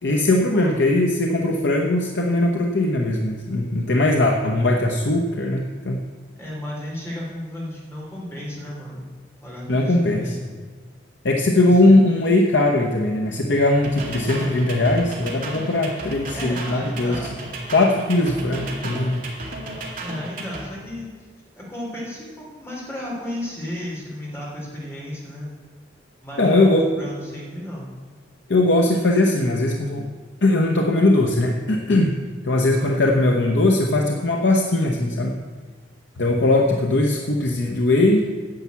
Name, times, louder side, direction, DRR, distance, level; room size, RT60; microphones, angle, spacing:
voice 1, 0.0-6.0 9.7-10.4 11.2-17.2 17.7-19.2 26.4-26.9 28.5-30.1 30.4-32.1 32.4-35.3 36.2-38.4, left 2 dB, 75° left, 1 dB, 1.0 m, -19 dB
voice 2, 6.3-9.0 9.4-10.3 11.5-12.0 16.3-17.4 20.0-21.1 21.5-25.5 26.2-27.9 32.6-32.9, left 1 dB, 15° left, -4 dB, 3.3 m, -34 dB
sound 1, 13.8-20.7, right 2 dB, 50° right, 2.2 m, -34 dB
10.5 x 7.1 x 8.3 m, 1.4 s
head